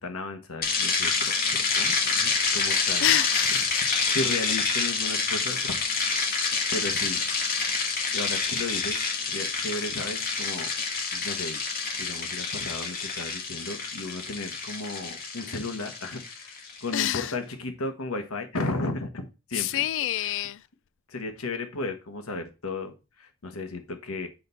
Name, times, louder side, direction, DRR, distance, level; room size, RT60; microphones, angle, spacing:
voice 1, 0.0-3.2 3.9-5.8 6.0-6.5 6.7-7.2 8.1-9.0 9.3-10.7 11.1-11.6 12.0-19.8 20.2-20.5 21.1-24.3, left 2 dB, 85° left, 1.4 m, -35 dB
sound 1, 0.6-16.9, left 4 dB, 45° left, 1.6 m, -28 dB
voice 2, 3.0-3.8 16.9-17.3 19.5-20.6, left 13 dB, 60° left, 0.4 m, -27 dB
7.6 x 4.1 x 4.4 m
head